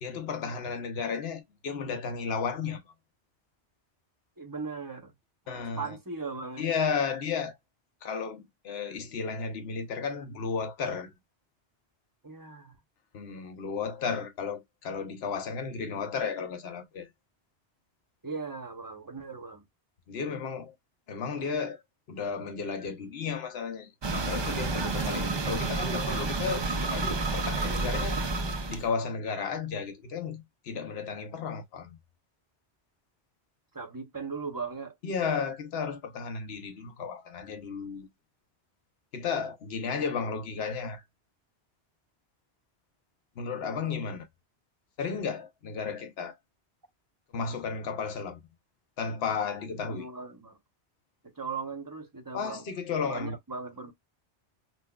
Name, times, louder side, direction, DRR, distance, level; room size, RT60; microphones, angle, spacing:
voice 1, 0.0-2.8 5.5-6.0 6.6-7.6 8.0-11.1 13.1-17.1 20.1-20.7 21.1-21.8 22.1-28.2 28.7-32.0 35.0-38.1 39.1-41.0 43.4-44.3 45.0-46.4 47.3-48.4 49.0-50.1 52.3-53.3, left 5 dB, 70° left, 1.0 m, -33 dB
voice 2, 4.4-5.1 5.5-6.7 12.2-12.8 18.2-19.6 33.7-35.0 49.9-50.6 51.2-52.7 53.0-53.9, right 4 dB, 20° right, 0.7 m, -38 dB
sound 1, 24.0-28.9, right 3 dB, 45° right, 0.3 m, -30 dB
5.6 x 2.2 x 2.3 m
omnidirectional pair, 1.1 m